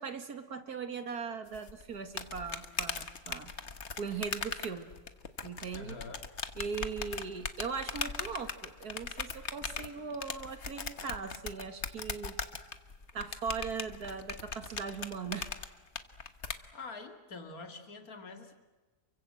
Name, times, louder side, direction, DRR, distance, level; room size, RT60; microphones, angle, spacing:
voice 1, 0.0-3.5 4.0-4.9 5.4-6.0 6.6-12.4 13.1-15.5, right 5 dB, 85° right, 8 dB, 2.5 m, -39 dB
sound 1, 1.5-16.6, left 5 dB, 50° left, 1.6 m, -39 dB
voice 2, 5.7-6.3 16.7-18.5, left 3 dB, 70° left, 5 dB, 2.9 m, -45 dB
29.0 x 24.0 x 7.8 m, 1.2 s
omnidirectional pair, 1.6 m